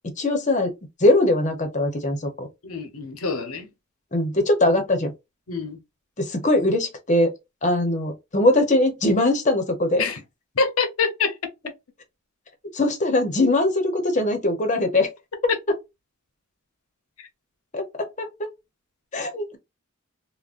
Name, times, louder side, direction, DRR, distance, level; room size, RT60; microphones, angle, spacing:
voice 1, 0.2-0.7 1.0-2.5 4.1-5.1 6.2-7.3 7.6-10.0 12.7-15.1 17.7-17.8 18.2-18.5 19.1-19.6, left 1 dB, 35° left, 0.8 m, -21 dB
voice 2, 2.6-3.7 5.5-5.8 10.0-10.2 10.5-11.4 17.2-17.3, left 4 dB, 90° left, 0.9 m, -26 dB
3.6 x 2.2 x 2.4 m
head